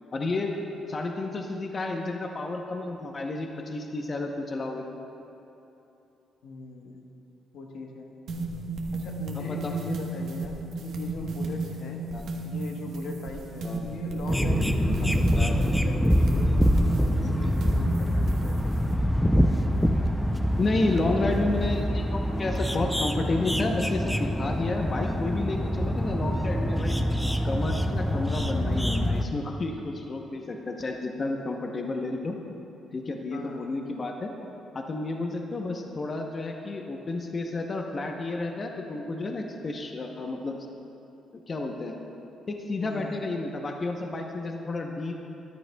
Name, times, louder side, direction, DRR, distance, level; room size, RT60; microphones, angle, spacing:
voice 1, 0.1-0.5 0.9-4.8 9.3-9.7 12.1-12.2 13.6-13.8 15.4-15.5 20.6-27.0 27.4-32.4 32.9-34.3 34.7-40.6 41.3-41.9 42.5-45.1, left 2 dB, 35° left, 2 dB, 0.8 m, -31 dB
voice 2, 6.4-7.0 7.5-8.1 8.9-12.0 12.4-18.8 33.3-33.7 42.8-43.1, left 3 dB, 80° left, 2 dB, 1.1 m, -40 dB
sound 1, 8.3-18.9, right 2 dB, 75° right, 1.1 m, -33 dB
sound 2, 14.3-29.2, equal, ahead, 0.5 m, -25 dB
13.5 x 10.5 x 2.3 m, 2.9 s
cardioid pair, 90°, 0 cm